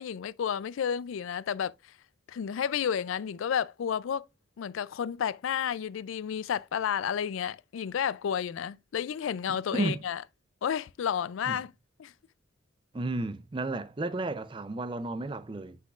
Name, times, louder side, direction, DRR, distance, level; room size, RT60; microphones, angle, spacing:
voice 1, 0.0-1.9 2.3-4.2 4.6-10.2 10.6-11.7 12.0-12.1, left 8 dB, 90° left, 0.4 m, -31 dB
voice 2, 9.7-10.0 11.5-11.6 12.9-15.8, right 2 dB, 25° right, 0.4 m, -32 dB
7.4 x 6.7 x 2.4 m
head